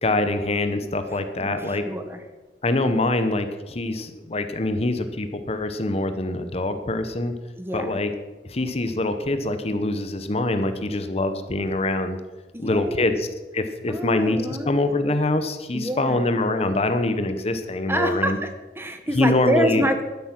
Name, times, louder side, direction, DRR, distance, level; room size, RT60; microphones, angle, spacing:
voice 1, 0.0-1.8 2.6-7.3 7.7-8.1 8.4-12.2 12.6-18.4 19.1-19.9, left 2 dB, 35° left, 9 dB, 0.9 m, -24 dB
voice 2, 1.4-2.2 7.5-8.0 12.5-13.1 13.9-14.7 15.7-16.2 17.9-18.5 18.8-20.0, equal, 15° right, 7 dB, 1.2 m, -26 dB
12.0 x 11.0 x 6.0 m, 1.2 s
head